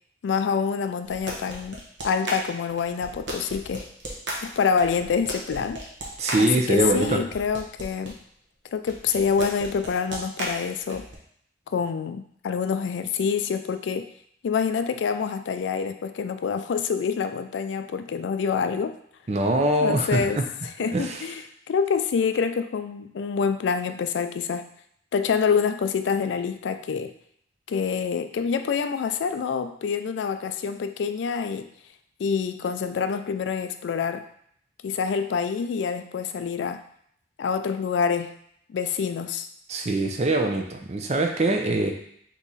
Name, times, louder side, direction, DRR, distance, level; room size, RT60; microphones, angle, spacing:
voice 1, 0.2-3.9 4.4-5.8 6.4-8.2 8.7-11.0 11.7-14.1 14.4-18.9 19.8-20.4 20.8-21.4 21.7-24.7 25.1-27.1 27.7-31.7 32.2-34.3 34.8-36.8 37.4-38.4 38.7-39.5, left 6 dB, 90° left, 9 dB, 0.3 m, -26 dB
sound 1, 1.0-8.1 8.9-11.2, right 1 dB, 85° right, 0.9 m, -35 dB
voice 2, 6.2-7.2 19.3-20.4 20.9-21.2 39.7-41.9, right 2 dB, 40° right, 3 dB, 0.5 m, -23 dB
3.7 x 3.0 x 4.1 m, 0.68 s
head